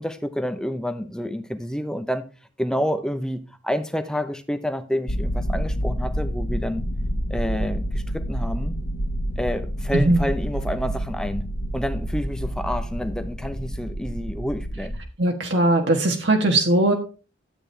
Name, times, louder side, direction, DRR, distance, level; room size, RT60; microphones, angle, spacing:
voice 1, 0.0-2.2 2.6-6.9 7.3-8.8 9.4-11.5 11.7-15.0, equal, 5° left, 0.8 m, -28 dB
sound 1, 5.1-15.0, equal, 65° left, 1.3 m, -28 dB
voice 2, 9.9-10.2 15.2-16.9, right 2 dB, 65° right, 1.5 m, -19 dB
12.0 x 8.8 x 3.4 m
head